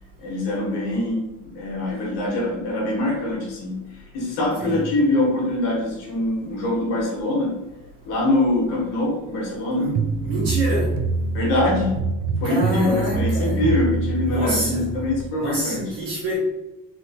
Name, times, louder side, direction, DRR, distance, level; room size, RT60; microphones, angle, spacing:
voice 1, 0.2-7.5 8.0-9.9 11.3-12.0 12.4-15.9, left 1 dB, 80° left, -3 dB, 1.3 m, -24 dB
sound 1, 9.9-15.3, right 3 dB, 55° right, 0.5 m, -25 dB
voice 2, 10.2-10.9 12.4-13.6 14.2-14.9 15.4-16.4, right 1 dB, 80° right, -9 dB, 1.3 m, -26 dB
3.1 x 2.9 x 2.7 m, 1.0 s
supercardioid pair, 70°, 43 cm